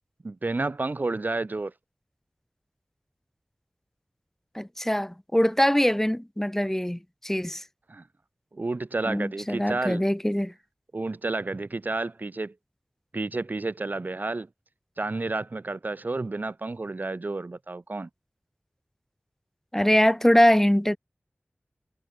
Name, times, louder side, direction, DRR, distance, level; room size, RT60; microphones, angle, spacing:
voice 1, 0.2-1.7 7.9-8.0 8.5-10.0 10.9-12.5 13.1-14.5 15.0-18.1, right 3 dB, 50° right, 0.7 m, -30 dB
voice 2, 4.5-7.6 9.0-10.5 19.7-21.0, equal, 10° left, 1.5 m, -23 dB
wide cardioid pair, 55°, 4 cm